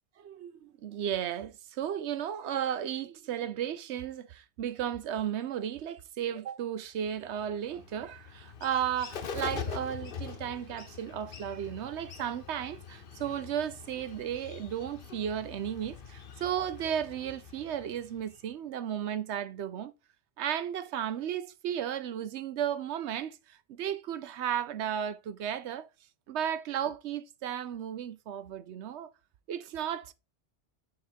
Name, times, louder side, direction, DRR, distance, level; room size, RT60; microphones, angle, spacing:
voice 1, 0.2-19.9 20.4-25.9 26.3-29.1 29.5-30.1, right 9 dB, 85° right, 1.0 m, -34 dB
Bird, 7.1-18.5, left 6 dB, 55° left, 1.0 m, -44 dB
6.3 x 3.9 x 4.5 m
omnidirectional pair, 1.1 m